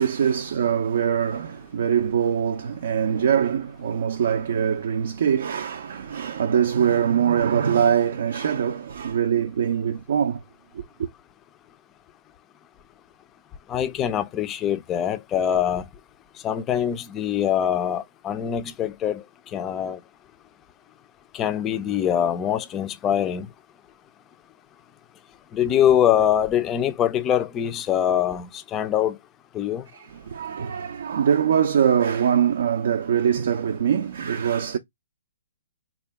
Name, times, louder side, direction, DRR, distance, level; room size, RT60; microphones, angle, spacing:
voice 1, 0.0-10.4 10.7-11.1 29.9-34.8, right 8 dB, 60° right, 0.4 m, -23 dB
voice 2, 13.7-15.8 16.4-19.2 19.5-20.0 21.3-23.5 25.5-29.2 29.5-29.8, left 10 dB, 20° left, 0.3 m, -23 dB
3.5 x 2.2 x 3.4 m
hypercardioid pair, 150°, 0 cm